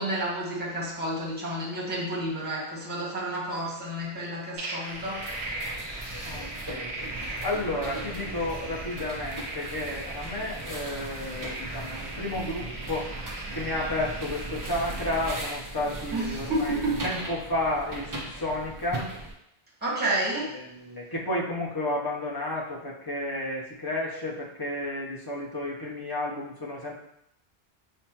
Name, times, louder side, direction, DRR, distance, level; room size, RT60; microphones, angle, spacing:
voice 1, 0.0-5.6 16.1-17.0 19.8-20.5, right 1 dB, 10° right, -5 dB, 0.9 m, -30 dB
sound 1, 4.5-15.5, right 2 dB, 90° right, 1.0 m, -39 dB
sound 2, 4.9-19.3, right 2 dB, 30° right, 0.3 m, -38 dB
voice 2, 6.2-7.1 7.4-13.1 13.5-19.1 20.4-26.9, left 1 dB, 25° left, -4 dB, 0.6 m, -32 dB
5.3 x 2.1 x 2.8 m, 0.77 s
omnidirectional pair, 1.1 m